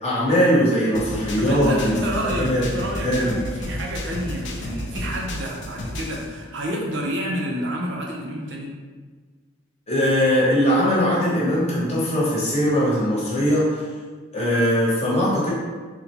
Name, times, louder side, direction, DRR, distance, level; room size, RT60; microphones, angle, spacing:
voice 1, 0.0-1.9 2.4-2.7 3.0-3.4 9.9-13.8 14.3-15.5, equal, 35° left, -7 dB, 1.0 m, -20 dB
sound 1, 0.9-6.2, left 1 dB, 70° left, 0.4 m, -32 dB
voice 2, 1.4-8.7, right 1 dB, 75° right, -2 dB, 0.6 m, -29 dB
3.7 x 2.2 x 2.9 m, 1.5 s
head